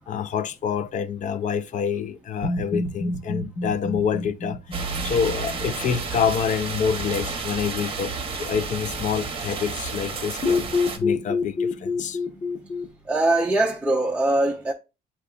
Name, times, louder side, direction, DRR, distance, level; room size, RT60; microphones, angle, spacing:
voice 1, 0.1-12.2, left 7 dB, 50° left, 0.4 m, -27 dB
sound 1, 2.4-6.4 10.4-12.9, left 3 dB, 30° left, 1.3 m, -27 dB
sound 2, 4.7-11.0, right 4 dB, 30° right, 1.0 m, -31 dB
voice 2, 13.1-14.7, right 2 dB, 10° right, 0.5 m, -22 dB
7.9 x 2.8 x 2.4 m
cardioid pair, 110°, 17 cm